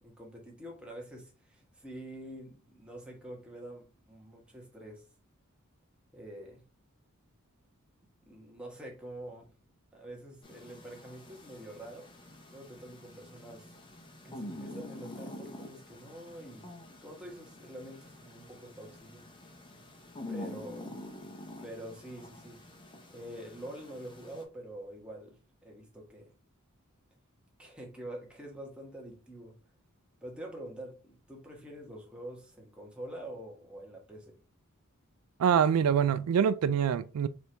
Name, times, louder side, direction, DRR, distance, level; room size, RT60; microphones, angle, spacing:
voice 1, 0.0-5.0 6.1-6.6 8.2-9.5 9.9-12.1 12.5-13.7 14.2-16.7 17.0-19.2 20.3-21.0 21.6-22.6 23.1-26.3 27.6-29.6 30.2-34.3, right 1 dB, 5° right, 1.1 m, -46 dB
sound 1, 10.4-24.4, left 1 dB, 20° left, 0.7 m, -47 dB
voice 2, 35.4-37.3, right 8 dB, 85° right, 0.3 m, -25 dB
4.5 x 2.6 x 3.3 m
head